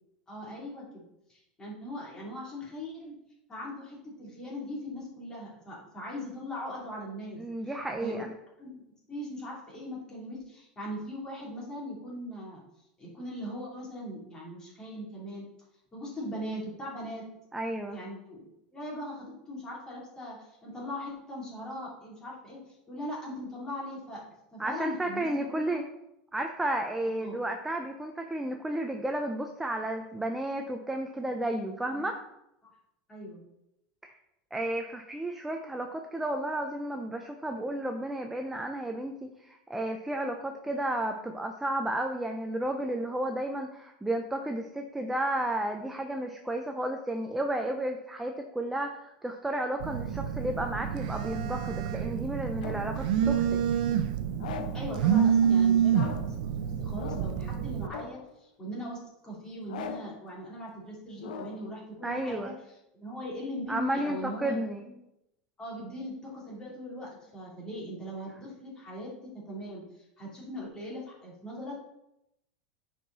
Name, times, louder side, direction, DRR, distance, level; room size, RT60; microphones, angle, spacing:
voice 1, 0.3-3.1 3.5-7.7 8.0-8.2 8.6-8.8 9.1-12.6 13.0-15.4 15.9-17.3 17.9-24.2 24.5-25.8 27.0-27.4 31.9-32.0 33.1-33.4 54.7-64.9 65.6-71.8, equal, 15° left, -5 dB, 3.0 m, -40 dB
voice 2, 7.4-8.3 17.5-18.0 24.6-25.8 26.3-32.2 34.0-34.1 34.5-53.6 62.0-62.5 63.7-64.8, right 1 dB, 5° right, 4 dB, 0.5 m, -32 dB
Telephone, 49.8-57.9, right 8 dB, 75° right, 0.6 m, -28 dB
sound 1, 50.9-53.0 54.4-54.9 55.9-56.4 56.9-57.5 57.9-58.4 59.7-60.2 61.2-61.7, left 6 dB, 90° left, 0.8 m, -42 dB
9.9 x 4.7 x 4.0 m, 0.85 s
supercardioid pair, 150°, 4 cm